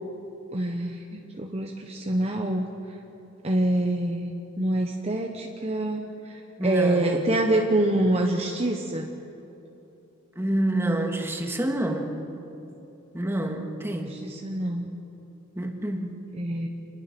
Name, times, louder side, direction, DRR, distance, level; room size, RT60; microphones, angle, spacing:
voice 1, 0.5-2.7 3.4-9.1 14.1-14.9 16.4-16.7, right 1 dB, 30° right, 2 dB, 1.1 m, -26 dB
voice 2, 6.6-7.3 10.4-12.1 13.1-14.2 15.6-16.2, right 1 dB, 10° right, 3 dB, 1.9 m, -28 dB
27.5 x 21.0 x 6.1 m, 2.9 s
head